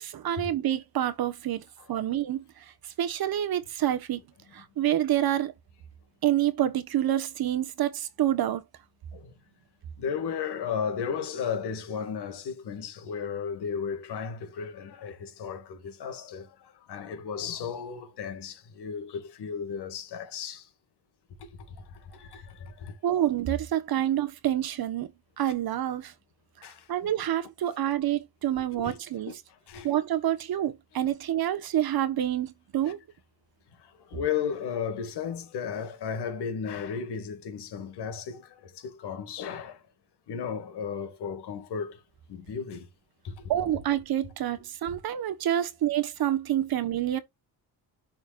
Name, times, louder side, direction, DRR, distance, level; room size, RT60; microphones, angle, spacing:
voice 1, 0.0-1.6 1.9-2.4 3.0-4.2 4.5-5.5 6.2-8.6 23.0-25.1 25.4-26.1 26.9-29.3 29.8-33.0 43.5-47.2, right 12 dB, 60° right, 1.3 m, -27 dB
voice 2, 10.0-16.5 16.9-20.6 22.1-22.9 26.6-27.1 28.7-29.0 29.3-29.4 29.7-29.9 32.9-33.0 34.1-39.8 40.3-42.0 42.3-42.9 43.2-43.3 43.6-43.7 44.9-45.0 46.5-46.6, left 7 dB, 70° left, 2.3 m, -34 dB
11.0 x 4.5 x 2.5 m
cardioid pair, 130°, 42 cm